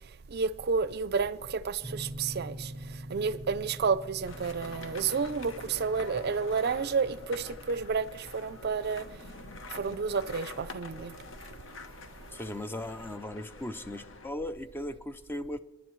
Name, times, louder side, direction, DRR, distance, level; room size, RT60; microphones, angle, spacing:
voice 1, 0.3-9.1 9.7-11.1, right 5 dB, 50° right, 0.5 m, -31 dB
sound 1, 1.8-10.5, right 1 dB, 30° left, 3.0 m, -46 dB
sound 2, 4.2-14.3, left 3 dB, 65° left, 1.0 m, -47 dB
voice 2, 12.3-15.6, left 1 dB, 10° left, 0.5 m, -37 dB
27.0 x 11.0 x 3.1 m
head